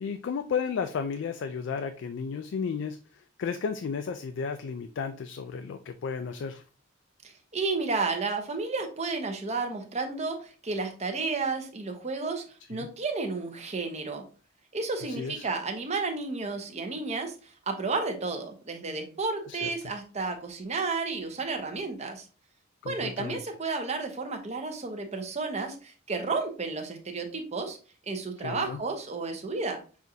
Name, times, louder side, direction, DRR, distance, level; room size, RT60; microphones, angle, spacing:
voice 1, 0.0-6.6 12.7-12.9 15.1-15.5 19.5-19.7 22.8-23.4 28.4-28.8, left 6 dB, 65° left, 7 dB, 0.3 m, -33 dB
voice 2, 7.2-12.4 12.7-14.2 14.7-22.3 22.9-27.8 28.1-29.8, right 3 dB, 35° right, 5 dB, 0.8 m, -32 dB
6.2 x 2.6 x 2.7 m, 0.37 s
head